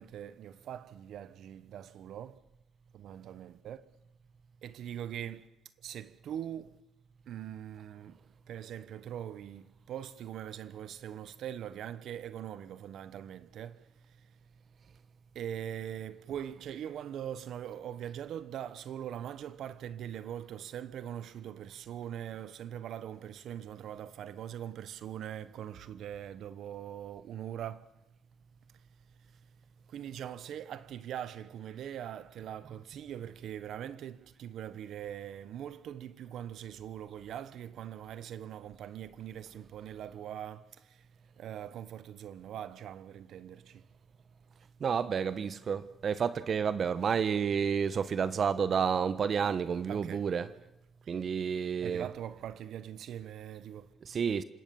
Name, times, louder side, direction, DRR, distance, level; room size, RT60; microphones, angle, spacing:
voice 1, 0.0-2.4 2.9-3.8 4.6-5.5 5.8-6.8 7.3-8.2 8.5-13.8 15.3-27.9 29.9-41.1 41.4-43.8 49.4-49.6 49.9-50.3 51.8-53.9, right 10 dB, 75° right, 1.0 m, -42 dB
voice 2, 44.8-50.5 51.1-52.1 54.0-54.4, right 7 dB, 50° right, 1.0 m, -30 dB
27.0 x 18.5 x 7.1 m
cardioid pair, 90°, 0 cm